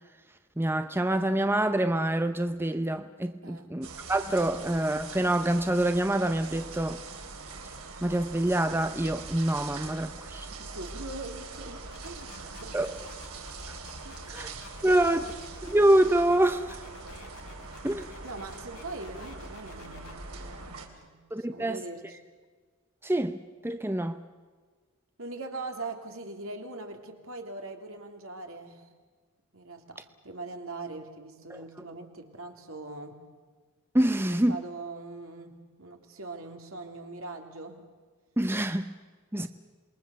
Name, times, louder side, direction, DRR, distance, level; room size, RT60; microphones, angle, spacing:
voice 1, 0.6-7.0 8.0-10.5 12.7-12.9 14.3-14.5 14.8-15.3 15.6-16.7 17.8-18.1 21.3-21.8 23.0-23.4 23.6-24.2 33.9-34.6 38.4-38.9 39.3-39.5, right 1 dB, 10° right, 0.7 m, -26 dB
sound 1, 3.8-20.9, right 3 dB, 90° right, 3.5 m, -43 dB
voice 2, 10.5-12.9 14.0-14.4 14.8-15.3 18.2-22.2 25.2-28.9 29.5-33.2 34.1-37.9 39.3-39.5, right 2 dB, 70° right, 3.0 m, -42 dB
sound 2, 11.9-20.1, left 3 dB, 80° left, 3.8 m, -50 dB
27.5 x 21.5 x 7.0 m
head